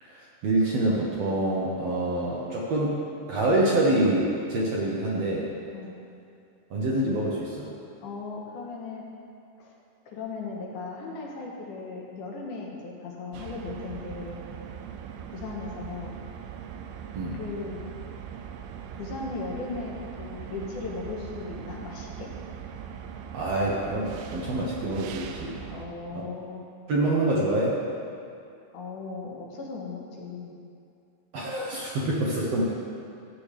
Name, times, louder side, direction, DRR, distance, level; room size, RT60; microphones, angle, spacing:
voice 1, 0.0-3.0 3.3-5.5 6.7-7.7 17.2-17.4 23.3-25.6 26.1-26.2 26.9-27.8 31.3-32.6, right 1 dB, 65° right, -4 dB, 1.8 m, -26 dB
voice 2, 8.0-9.0 9.6-9.7 10.1-14.4 15.3-16.2 17.3-17.8 19.0-22.3 25.7-26.6 28.7-30.5, left 4 dB, 70° left, -2 dB, 2.5 m, -37 dB
sound 1, 13.3-25.9, right 8 dB, 85° right, 2.2 m, -40 dB
13.5 x 8.6 x 3.4 m, 2.5 s
omnidirectional pair, 4.0 m